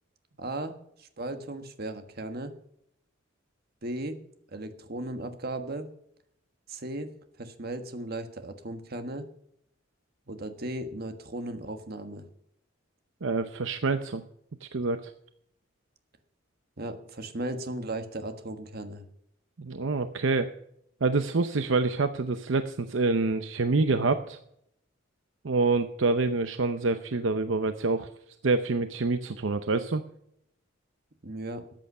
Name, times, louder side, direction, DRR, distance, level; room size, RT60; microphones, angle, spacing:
voice 1, 0.4-0.7 1.0-2.5 3.8-4.2 4.5-5.9 6.7-7.1 7.4-9.3 10.3-12.2 16.8-19.0 31.2-31.6, right 1 dB, 50° right, 8 dB, 1.4 m, -36 dB
voice 2, 13.2-14.2 14.6-15.1 19.6-20.5 21.0-24.4 25.4-28.1 28.4-30.0, right 3 dB, 70° right, 9 dB, 0.7 m, -26 dB
13.5 x 9.1 x 5.5 m, 0.73 s
head